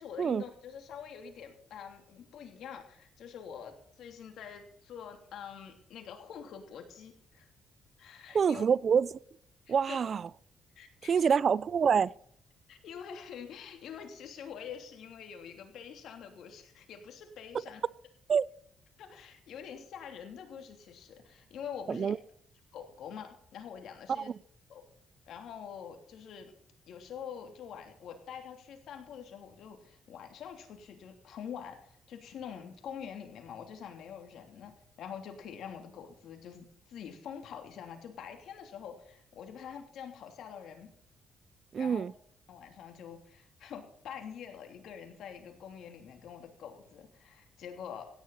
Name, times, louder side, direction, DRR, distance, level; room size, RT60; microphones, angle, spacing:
voice 1, 0.0-7.5 8.0-8.6 9.7-10.0 10.8-11.3 12.7-17.8 19.0-22.1 22.7-24.3 24.7-24.9 25.3-26.5 26.9-34.7 35.0-40.9 41.8-42.0 42.5-48.0, left 8 dB, 75° left, 3.0 m, -45 dB
voice 2, 8.3-9.2 9.7-10.3 11.1-12.1 18.3-18.4 21.9-22.2 24.2-24.3 41.7-42.1, right 6 dB, 50° right, 0.4 m, -26 dB
16.5 x 10.5 x 4.1 m
cardioid pair, 90°, 0 cm